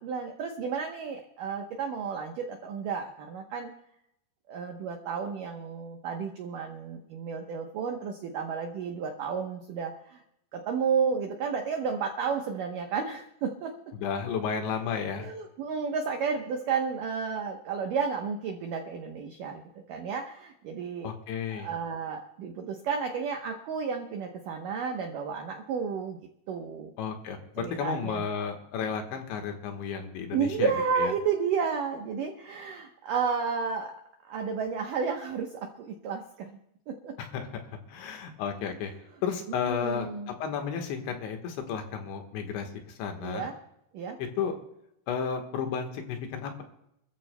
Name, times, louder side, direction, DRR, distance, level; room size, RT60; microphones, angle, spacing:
voice 1, 0.0-3.7 4.5-10.2 10.5-13.7 15.1-19.6 19.9-21.1 21.5-26.2 26.5-26.9 27.6-28.2 30.3-33.9 34.2-36.6 36.9-37.2 39.7-40.3 43.2-43.6 43.9-44.2, right 6 dB, 90° right, 3 dB, 1.8 m, -32 dB
voice 2, 13.9-15.3 21.0-21.7 27.0-30.7 31.0-31.1 37.2-37.5 37.9-38.9 39.2-42.7 43.0-43.5 44.4-44.5 45.1-46.6, left 7 dB, 75° left, 4 dB, 3.7 m, -32 dB
27.0 x 14.0 x 2.2 m, 0.79 s
omnidirectional pair, 5.3 m